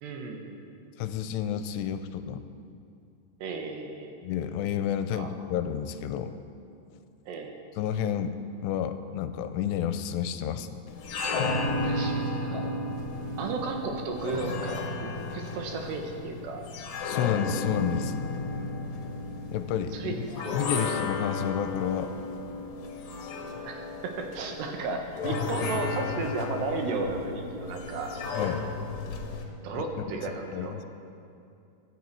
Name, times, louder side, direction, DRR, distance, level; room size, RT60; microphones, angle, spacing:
voice 1, 0.0-0.6 3.4-4.1 5.1-5.3 7.3-7.5 11.8-12.2 12.5-12.6 13.4-16.7 19.9-20.5 20.8-20.9 23.7-28.1 29.6-30.7, right 4 dB, 80° right, 3 dB, 3.5 m, -34 dB
voice 2, 1.0-2.4 4.2-6.4 7.8-8.4 8.6-10.7 17.0-18.1 19.5-20.2 20.5-22.1 28.4-28.6 29.7-30.2 30.5-30.9, left 9 dB, 90° left, 10 dB, 2.8 m, -30 dB
sound 1, 10.9-29.4, left 3 dB, 65° left, 2.8 m, -33 dB
23.5 x 10.5 x 4.7 m, 2.5 s
omnidirectional pair, 4.9 m